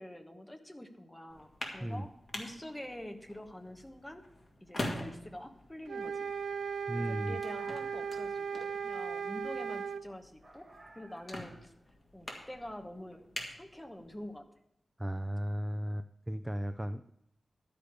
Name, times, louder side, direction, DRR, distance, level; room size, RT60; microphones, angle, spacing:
voice 1, 0.0-2.1 2.3-4.2 4.6-6.3 7.0-10.6 10.9-11.7 12.1-13.3 13.6-14.5, left 1 dB, 10° left, 6 dB, 1.1 m, -46 dB
sound 1, 1.3-14.4, left 1 dB, 30° left, 2.0 m, -46 dB
sound 2, 5.9-10.0, right 6 dB, 85° right, 0.3 m, -37 dB
voice 2, 6.9-7.4 15.0-17.1, equal, 10° right, 11 dB, 0.3 m, -35 dB
sound 3, 7.4-8.5 10.4-11.8, right 2 dB, 30° right, 1.3 m, -57 dB
11.5 x 5.1 x 7.9 m, 0.79 s
wide cardioid pair, 125°, 0 cm